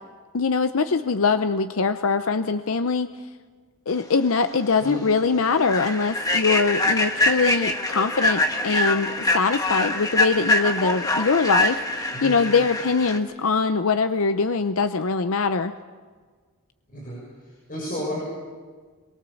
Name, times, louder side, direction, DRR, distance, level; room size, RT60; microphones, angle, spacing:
voice 1, 0.3-3.1 3.9-15.7, left 4 dB, 75° left, 10 dB, 0.7 m, -23 dB
Human voice / Train, 4.3-4.5 4.9-5.1 5.6-13.2, left 1 dB, 15° left, 1.3 m, -24 dB
voice 2, 16.9-18.2, equal, 40° left, -4 dB, 6.8 m, -33 dB
23.5 x 22.5 x 7.1 m, 1.5 s
head